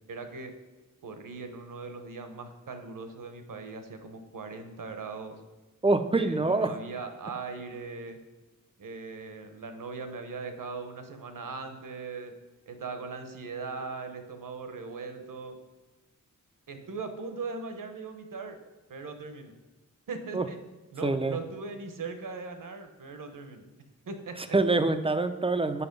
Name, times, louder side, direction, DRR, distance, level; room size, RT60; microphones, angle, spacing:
voice 1, 0.1-0.5 1.0-5.4 6.1-8.2 8.8-12.3 12.7-15.6 16.7-18.6 18.9-19.6 20.1-20.6 20.9-23.7 24.1-24.6, right 4 dB, 75° right, 7 dB, 1.0 m, -39 dB
voice 2, 5.8-6.7 20.3-20.4 21.0-21.4 24.5-25.9, right 3 dB, 15° right, 10 dB, 0.4 m, -25 dB
6.9 x 5.7 x 5.2 m, 1.1 s
wide cardioid pair, 130°, 33 cm